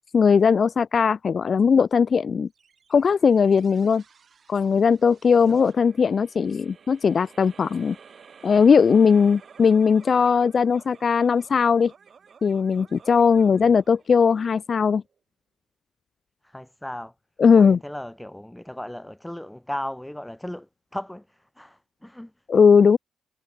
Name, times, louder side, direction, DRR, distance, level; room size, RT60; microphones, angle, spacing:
voice 1, 0.1-2.5 2.9-4.0 4.5-8.0 8.4-11.9 12.4-15.0 17.4-17.8 22.5-23.0, left 6 dB, 45° left, 0.5 m, -19 dB
sound 1, 2.6-15.2, right 6 dB, 45° right, 4.5 m, -52 dB
voice 2, 16.4-17.1 17.5-22.4, left 1 dB, 5° left, 3.0 m, -36 dB
cardioid pair, 90°, 0 cm